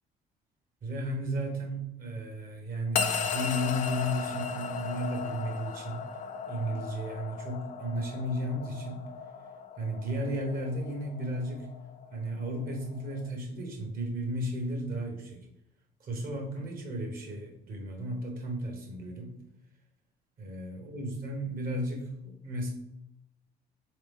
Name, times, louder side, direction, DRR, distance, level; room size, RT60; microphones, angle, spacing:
voice 1, 0.8-6.1 6.5-9.1 9.8-11.7 12.1-15.4 16.0-19.4 20.4-22.7, equal, 60° right, 1 dB, 1.2 m, -34 dB
sound 1, 2.9-13.3, left 6 dB, 50° left, 0.4 m, -36 dB
3.4 x 3.2 x 3.5 m, 0.79 s
cardioid pair, 110°, 17 cm